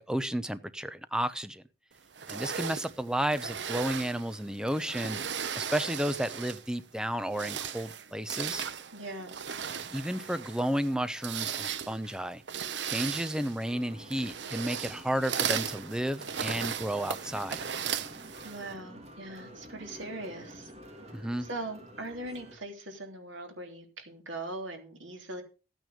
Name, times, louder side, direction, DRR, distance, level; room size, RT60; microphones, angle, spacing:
voice 1, 0.0-1.6 2.3-5.2 5.5-8.6 9.9-12.4 12.8-17.6 21.1-21.5, equal, 5° right, 12 dB, 0.7 m, -32 dB
sound 1, 2.2-6.7 7.2-18.7, right 8 dB, 70° right, 0.8 m, -37 dB
voice 2, 8.9-9.4 18.4-20.7 21.4-25.4, right 2 dB, 85° right, 3 dB, 3.4 m, -40 dB
sound 2, 13.7-22.6, equal, 35° right, 2.5 m, -49 dB
13.0 x 9.2 x 5.2 m, 0.33 s
head